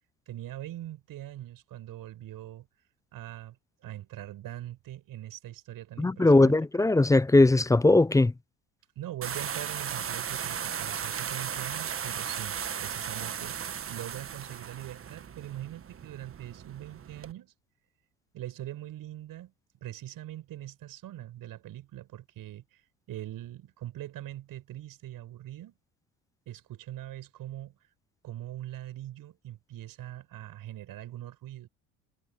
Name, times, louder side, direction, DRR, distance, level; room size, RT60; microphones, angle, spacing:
voice 1, 0.3-2.7 3.1-3.6 3.8-6.9 8.9-17.5 18.3-19.5 19.8-22.8 23.1-25.7 26.5-27.8 28.2-31.7, right 13 dB, 60° right, 6.5 m, -42 dB
voice 2, 6.0-8.3, left 2 dB, 10° left, 0.5 m, -20 dB
sound 1, 9.2-17.3, right 8 dB, 35° right, 1.4 m, -36 dB
supercardioid pair, 80°, 38 cm